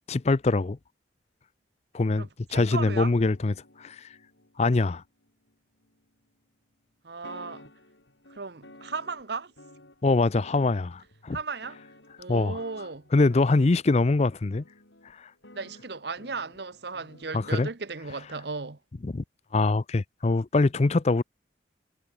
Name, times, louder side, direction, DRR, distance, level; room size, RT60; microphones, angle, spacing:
voice 1, 0.1-0.8 1.9-2.3 2.5-4.1 4.6-5.0 10.0-11.4 12.3-12.6 13.1-14.6 17.3-17.7 19.1-19.2 19.5-21.2, left 3 dB, 35° left, 0.5 m, -23 dB
voice 2, 2.1-3.1 7.0-7.7 8.3-9.5 11.3-11.8 12.2-13.1 15.5-18.8, right 4 dB, 65° right, 1.0 m, -36 dB
sound 1, 2.9-6.4 7.2-17.7, left 1 dB, 85° left, 6.9 m, -54 dB
head